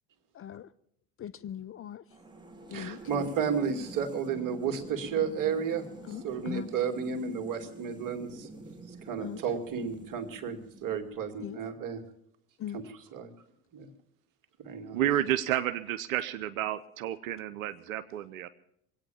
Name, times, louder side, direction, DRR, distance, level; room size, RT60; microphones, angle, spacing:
voice 1, 0.3-0.7 1.2-2.0 2.7-3.3 6.0-6.7 9.2-9.4 11.4-11.6 12.6-12.8, left 10 dB, 35° left, 0.6 m, -40 dB
sound 1, 2.1-11.4, right 2 dB, 10° right, 2.8 m, -47 dB
voice 2, 2.7-5.8 6.2-8.5 9.0-12.0 12.7-12.8 13.1-13.3 13.7-13.9 14.6-15.0, right 6 dB, 50° right, 2.4 m, -32 dB
voice 3, 14.9-18.5, right 12 dB, 85° right, 0.7 m, -31 dB
22.0 x 8.8 x 7.0 m
hypercardioid pair, 70°, 40 cm